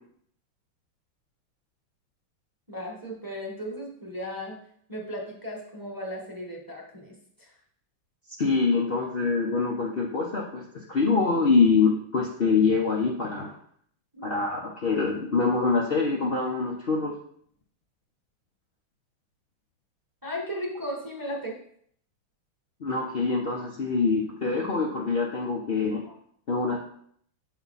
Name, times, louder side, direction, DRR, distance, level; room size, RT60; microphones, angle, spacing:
voice 1, 2.7-4.5 4.9-7.5 14.1-14.2 20.2-21.5 26.0-26.1, equal, 15° right, -2 dB, 0.9 m, -36 dB
voice 2, 8.4-13.6 14.2-17.1 22.8-26.0 26.5-26.8, left 4 dB, 75° left, -3 dB, 0.5 m, -25 dB
6.9 x 4.3 x 4.0 m, 0.65 s
omnidirectional pair, 2.2 m